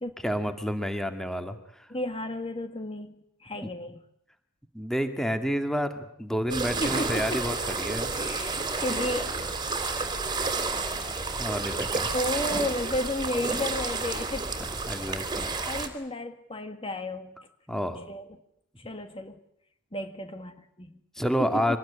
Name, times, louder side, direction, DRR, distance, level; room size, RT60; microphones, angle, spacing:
voice 1, 0.2-1.9 4.7-8.1 11.4-12.2 14.9-15.5 17.7-18.0 21.2-21.8, equal, ahead, 8 dB, 2.0 m, -29 dB
voice 2, 1.9-4.0 6.8-7.4 8.1-9.3 12.1-14.5 15.6-17.3 18.1-18.2 18.8-19.4 19.9-21.0 21.4-21.8, left 1 dB, 25° left, 8 dB, 1.7 m, -33 dB
sound 1, 6.5-15.9, right 3 dB, 20° right, 3.3 m, -30 dB
25.0 x 20.0 x 10.0 m, 0.73 s
head